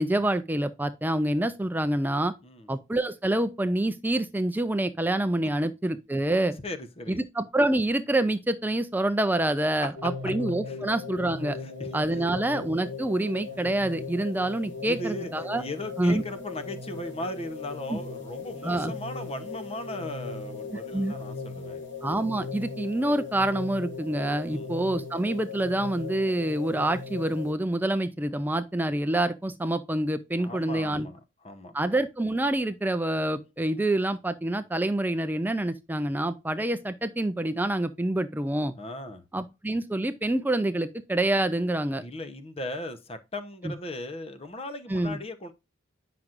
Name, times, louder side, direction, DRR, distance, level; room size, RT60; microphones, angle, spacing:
voice 1, 0.0-2.3 2.7-6.6 7.1-11.6 11.9-15.6 16.0-16.2 17.9-18.0 18.6-18.9 20.7-21.1 22.0-31.1 31.7-38.7 39.3-42.0 43.6-43.7 44.9-45.2, right 1 dB, 10° right, 0.4 m, -27 dB
voice 2, 6.6-7.2 9.8-9.9 10.7-10.8 11.5-12.2 14.8-15.3 15.6-21.8 24.4-24.7 30.4-31.8 38.8-39.2 42.0-45.5, left 1 dB, 30° left, 0.8 m, -38 dB
sound 1, 9.9-27.5, left 4 dB, 60° left, 1.7 m, -38 dB
9.2 x 5.9 x 2.5 m
head